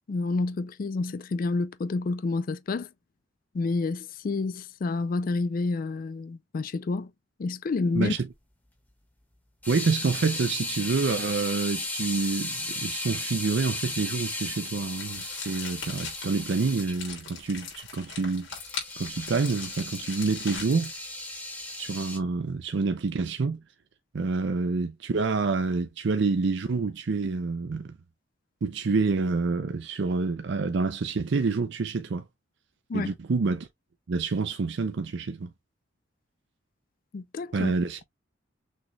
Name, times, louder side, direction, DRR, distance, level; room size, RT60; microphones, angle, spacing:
voice 1, 0.1-2.9 3.5-7.1 7.4-8.1 32.9-33.1 37.1-37.7, left 3 dB, 45° left, 0.4 m, -29 dB
voice 2, 7.9-8.3 9.7-18.5 19.0-20.9 21.8-23.6 24.1-27.9 28.6-32.2 32.9-33.7 34.1-35.5 37.5-38.0, right 4 dB, 65° right, 0.5 m, -27 dB
sound 1, 9.6-16.9 18.5-22.2, left 2 dB, 10° left, 1.0 m, -35 dB
sound 2, 14.9-21.0, left 6 dB, 85° left, 3.0 m, -41 dB
6.3 x 3.1 x 2.3 m
head